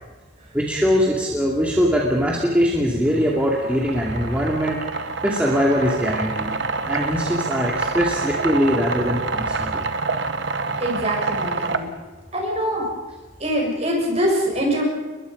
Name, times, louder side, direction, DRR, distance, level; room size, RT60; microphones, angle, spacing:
voice 1, 0.5-6.5 6.8-9.9, equal, 5° right, -3 dB, 2.6 m, -22 dB
sound 1, 3.1-11.8, right 4 dB, 60° right, 1.2 m, -27 dB
voice 2, 10.8-11.9 12.3-12.9 13.4-14.8, equal, 30° right, -1 dB, 6.6 m, -23 dB
29.0 x 22.5 x 5.3 m, 1.3 s
head